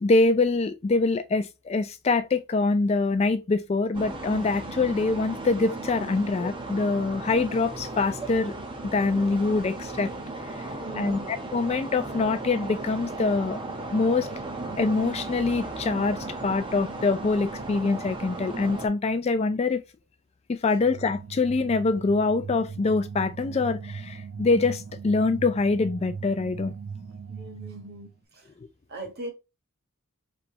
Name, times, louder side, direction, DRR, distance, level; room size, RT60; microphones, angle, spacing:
voice 1, 0.0-8.5 8.8-10.1 10.4-13.6 13.9-14.3 14.8-19.8 20.5-26.7, left 3 dB, 30° left, 0.3 m, -25 dB
sound 1, 3.9-18.9, right 2 dB, 25° right, 0.9 m, -36 dB
voice 2, 10.7-11.2 27.3-28.5 28.9-29.3, right 2 dB, 50° right, 1.5 m, -40 dB
sound 2, 20.8-28.1, right 5 dB, 75° right, 0.8 m, -39 dB
5.0 x 3.3 x 2.9 m
head